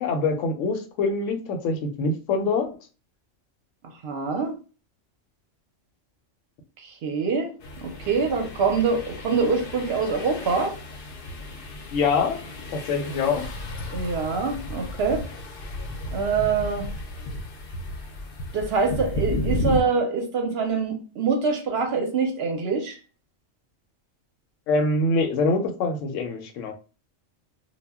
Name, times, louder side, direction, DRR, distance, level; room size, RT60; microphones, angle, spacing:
voice 1, 0.0-2.7 11.9-12.4 12.7-13.5 24.7-26.7, left 3 dB, 80° left, 6 dB, 0.9 m, -24 dB
voice 2, 4.0-4.5 6.8-7.5 7.8-10.7 13.9-15.2 16.1-16.9 18.5-23.0, right 4 dB, 65° right, 4 dB, 0.7 m, -25 dB
sound 1, 7.6-19.8, left 1 dB, 60° left, 0.6 m, -33 dB
2.1 x 2.1 x 3.4 m, 0.35 s
omnidirectional pair, 1.3 m